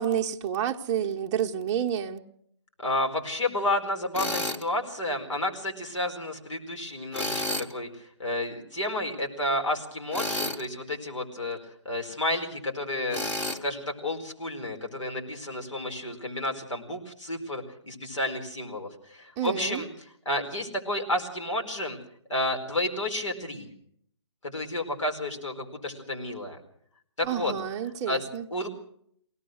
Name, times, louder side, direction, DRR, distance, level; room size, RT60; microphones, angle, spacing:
voice 1, 0.0-2.2 19.4-19.8 27.2-28.5, right 9 dB, 20° right, 1.0 m, -29 dB
voice 2, 2.8-11.6 11.8-13.3 13.6-22.0 22.3-23.7 24.4-26.6 27.2-27.5 28.1-28.2 28.5-28.7, left 1 dB, 90° left, 4.7 m, -31 dB
Tools, 4.1-4.6 7.1-7.7 10.1-10.7 13.1-13.6, left 1 dB, 10° left, 1.2 m, -30 dB
23.5 x 18.0 x 6.4 m
hypercardioid pair, 150°, 15 cm